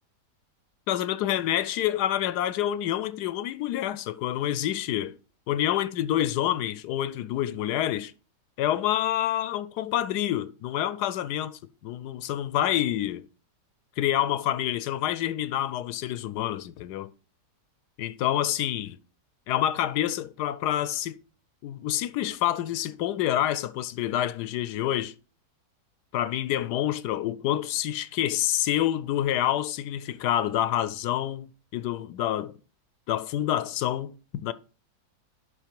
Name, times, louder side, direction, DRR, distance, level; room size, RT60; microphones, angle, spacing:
voice 1, 0.9-5.2 5.5-8.1 8.6-13.3 14.0-17.1 18.0-19.0 19.5-21.2 21.6-25.1 26.1-31.5 31.7-32.5 33.1-34.5, left 12 dB, 75° left, 1.1 m, -27 dB
11.0 x 4.2 x 4.6 m
omnidirectional pair, 1.8 m